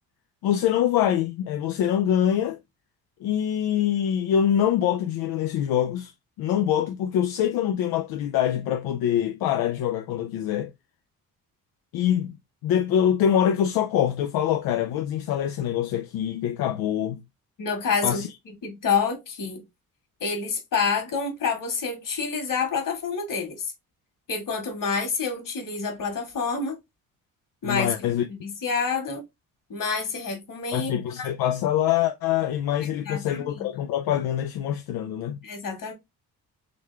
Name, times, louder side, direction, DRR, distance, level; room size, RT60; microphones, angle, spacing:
voice 1, 0.4-2.6 3.2-6.1 6.4-10.7 11.9-12.4 12.6-17.2 18.0-18.3 27.6-28.2 30.7-35.4, left 10 dB, 85° left, 0.6 m, -24 dB
voice 2, 17.6-18.2 18.6-19.6 20.2-23.7 24.3-26.8 27.6-27.9 28.3-29.2 29.7-30.9 32.8-33.7 35.4-35.9, left 5 dB, 60° left, 2.1 m, -28 dB
3.9 x 3.2 x 3.4 m
cardioid pair, 90°, 36 cm